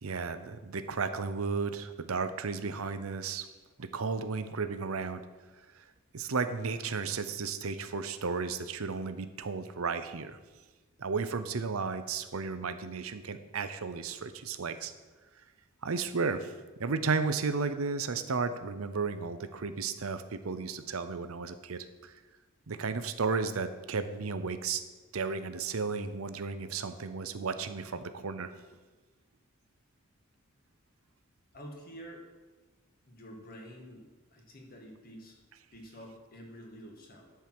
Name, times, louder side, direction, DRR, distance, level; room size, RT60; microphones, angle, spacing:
voice 1, 0.0-3.5 3.8-5.2 6.1-10.4 11.0-14.9 15.8-16.5 16.8-22.1 22.7-24.8 25.1-28.5, right 4 dB, 90° right, 11 dB, 0.7 m, -33 dB
voice 2, 31.5-32.2 33.1-35.4 35.7-37.3, equal, 45° left, 1 dB, 1.8 m, -48 dB
10.5 x 4.7 x 7.7 m, 1.2 s
head